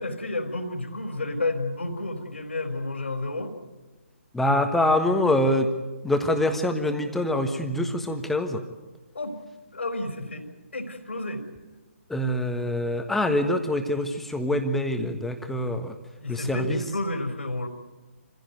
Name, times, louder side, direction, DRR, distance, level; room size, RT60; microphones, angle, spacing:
voice 1, 0.0-3.5 9.1-9.4 9.7-10.5 10.7-11.4 16.2-17.7, left 2 dB, 65° left, 4 dB, 4.0 m, -31 dB
voice 2, 4.3-5.7 6.0-8.6 12.1-15.9 16.3-16.8, left 1 dB, 5° left, 6 dB, 1.5 m, -25 dB
26.0 x 16.0 x 9.4 m, 1.2 s
figure-of-eight pair, 135°, 7 cm